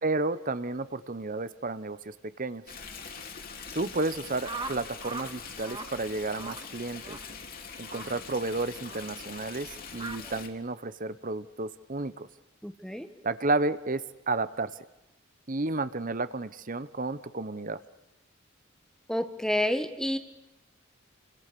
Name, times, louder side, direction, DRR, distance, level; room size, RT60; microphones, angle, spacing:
voice 1, 0.0-2.6 3.7-7.2 7.8-12.3 13.2-14.7 15.5-17.8, right 2 dB, 40° right, 14 dB, 1.1 m, -32 dB
Stream, 2.7-10.5, left 5 dB, 45° left, 3.4 m, -43 dB
sound 1, 4.4-5.3 5.6-5.9 6.3-6.6 7.0-7.2 7.9-8.1 8.8-9.0 9.9-10.2, right 4 dB, 20° right, 1.8 m, -39 dB
voice 2, 12.6-13.1 19.1-20.2, left 1 dB, 5° left, 9 dB, 1.7 m, -29 dB
29.5 x 25.5 x 6.9 m, 0.95 s
head